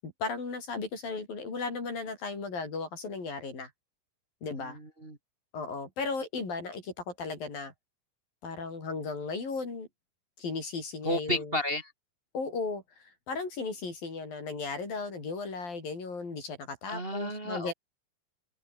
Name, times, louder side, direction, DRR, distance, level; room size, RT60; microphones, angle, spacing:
voice 1, 0.0-3.7 4.4-4.8 5.5-7.7 8.4-9.9 10.4-11.6 12.3-17.7, left 4 dB, 90° left, 9.1 m, -36 dB
voice 2, 4.6-5.2 11.0-11.9 16.9-17.7, left 1 dB, 20° right, 2.4 m, -32 dB
open air
omnidirectional pair, 3.9 m